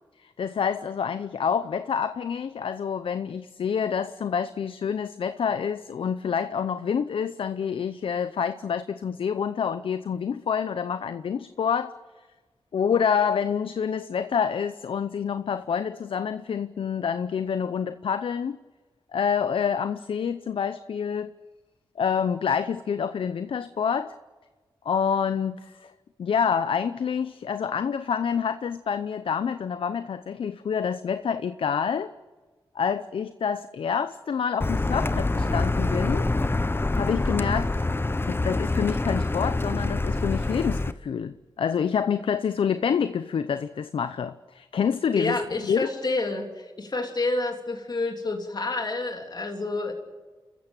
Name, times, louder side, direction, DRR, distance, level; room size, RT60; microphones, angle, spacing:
voice 1, 0.4-11.9 12.7-18.6 19.1-21.3 22.0-24.1 24.8-25.9 26.2-32.1 32.7-36.3 37.0-37.9 38.2-45.9, left 7 dB, 80° left, 12 dB, 0.7 m, -27 dB
Car, 34.6-40.9, left 2 dB, 25° left, 0.9 m, -26 dB
voice 2, 45.2-49.9, left 2 dB, 50° left, 3 dB, 3.1 m, -29 dB
28.5 x 14.5 x 9.1 m, 1.3 s
cardioid pair, 45°, 9 cm